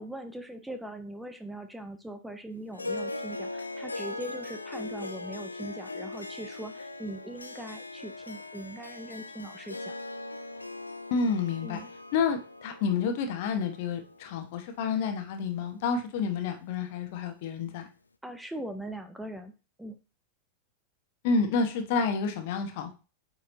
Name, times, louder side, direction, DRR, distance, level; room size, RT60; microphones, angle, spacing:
voice 1, 0.0-10.0 11.6-11.9 18.2-19.5 19.8-20.0, right 1 dB, 5° right, 7 dB, 0.7 m, -41 dB
Harp, 2.7-15.3, left 2 dB, 80° left, 0.5 m, -40 dB
voice 2, 11.1-11.8 12.1-17.9 21.2-23.0, left 5 dB, 50° left, 5 dB, 1.2 m, -29 dB
8.7 x 4.6 x 2.7 m, 0.33 s
figure-of-eight pair, 90°, 0 cm